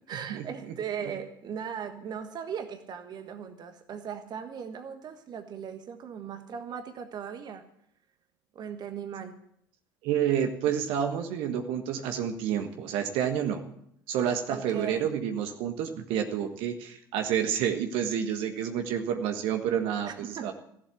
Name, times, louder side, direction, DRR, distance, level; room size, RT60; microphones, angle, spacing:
voice 1, 0.1-7.6 8.5-9.4 14.5-15.1 20.0-20.5, right 7 dB, 40° right, 7 dB, 1.4 m, -38 dB
voice 2, 10.0-13.6 14.1-20.5, right 9 dB, 55° right, 6 dB, 1.5 m, -29 dB
15.5 x 7.5 x 8.5 m, 0.74 s
figure-of-eight pair, 60°, 11 cm